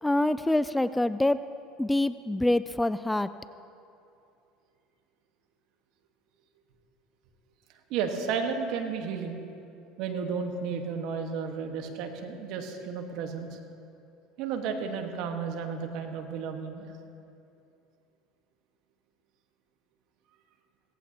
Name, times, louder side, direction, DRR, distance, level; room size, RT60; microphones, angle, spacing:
voice 1, 0.0-1.4 1.8-3.3, left 1 dB, 10° left, 14 dB, 0.3 m, -25 dB
voice 2, 7.9-9.4 10.0-13.6 14.4-16.9, right 6 dB, 65° right, 5 dB, 1.4 m, -33 dB
17.5 x 15.0 x 2.9 m, 2.6 s
hypercardioid pair, 85°, 0 cm